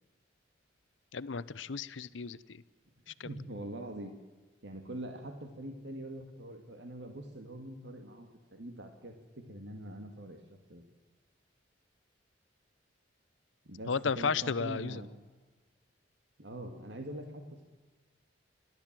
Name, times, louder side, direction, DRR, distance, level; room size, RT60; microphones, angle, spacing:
voice 1, 1.1-2.6 3.2-3.3 13.9-15.0, left 5 dB, 85° left, 17 dB, 0.7 m, -33 dB
voice 2, 3.1-4.1 4.6-10.4 10.7-10.8 13.7-15.1 16.4-17.7, right 1 dB, 70° right, 5 dB, 2.1 m, -44 dB
29.0 x 12.0 x 7.5 m, 1.3 s
head